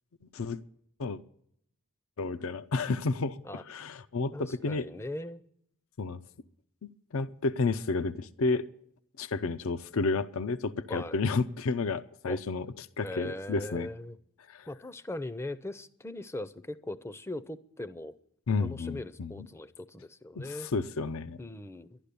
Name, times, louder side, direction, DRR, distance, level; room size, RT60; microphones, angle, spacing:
voice 1, 2.2-4.9 6.0-6.2 7.1-8.7 9.2-13.9 14.5-14.7 18.5-19.5 20.4-21.4, left 3 dB, 75° left, 14 dB, 0.5 m, -31 dB
voice 2, 4.3-5.4 10.9-11.2 12.3-12.4 13.0-14.2 14.7-18.2 18.6-20.7 21.4-22.0, left 1 dB, 10° left, 14 dB, 0.5 m, -40 dB
12.0 x 11.5 x 6.8 m, 0.72 s
head